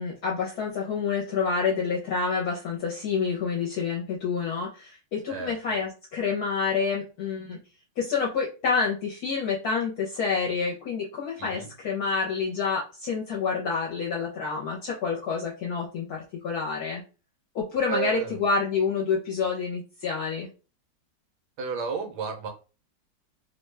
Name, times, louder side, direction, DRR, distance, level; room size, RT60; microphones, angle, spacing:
voice 1, 0.0-7.6 8.0-17.0 17.5-20.5, left 5 dB, 65° left, -3 dB, 1.1 m, -28 dB
voice 2, 5.3-5.9 11.4-11.7 17.8-18.4 21.6-22.5, right 6 dB, 75° right, 5 dB, 1.2 m, -32 dB
3.0 x 2.3 x 3.2 m, 0.33 s
omnidirectional pair, 1.9 m